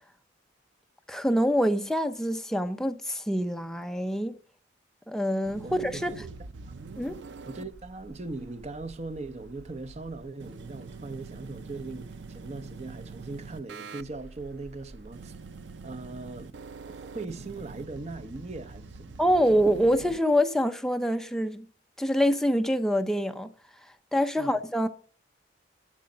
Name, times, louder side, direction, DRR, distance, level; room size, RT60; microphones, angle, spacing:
voice 1, 1.1-4.3 5.1-6.1 7.0-7.2 19.2-21.7 22.0-23.5 24.1-24.9, equal, 5° left, 0.7 m, -25 dB
sound 1, 5.4-20.2, right 4 dB, 85° right, 0.6 m, -45 dB
voice 2, 5.6-6.4 6.7-6.8 7.5-15.3 15.8-16.5 16.9-19.6 24.4-24.6, right 3 dB, 35° right, 0.7 m, -40 dB
11.5 x 4.9 x 8.3 m
head